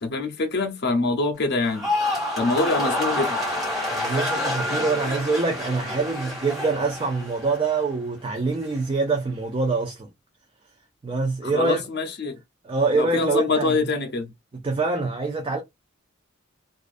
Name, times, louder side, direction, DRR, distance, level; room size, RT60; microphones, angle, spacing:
voice 1, 0.0-1.9 2.4-3.4 11.4-12.4 12.9-14.3, left 3 dB, 50° left, 0.6 m, -25 dB
sound 1, 1.6-7.9 8.3-8.8, left 1 dB, ahead, 1.3 m, -28 dB
voice 2, 3.9-10.1 11.0-11.8 12.6-13.8 14.5-15.6, right 3 dB, 25° right, 0.4 m, -25 dB
2.4 x 2.4 x 2.4 m
head